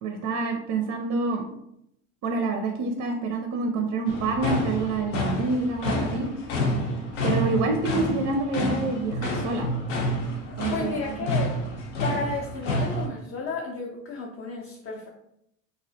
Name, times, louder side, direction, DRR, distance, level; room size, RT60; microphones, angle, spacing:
voice 1, 0.0-1.4 2.2-6.3 7.2-9.7 10.6-11.2, right 3 dB, 45° right, 3 dB, 0.4 m, -27 dB
sound 1, 4.1-13.1, left 1 dB, 80° left, 0.7 m, -29 dB
voice 2, 10.7-11.5 12.0-15.1, left 4 dB, 35° left, -2 dB, 0.5 m, -32 dB
2.3 x 2.1 x 2.6 m, 0.78 s
hypercardioid pair, 85°, 38 cm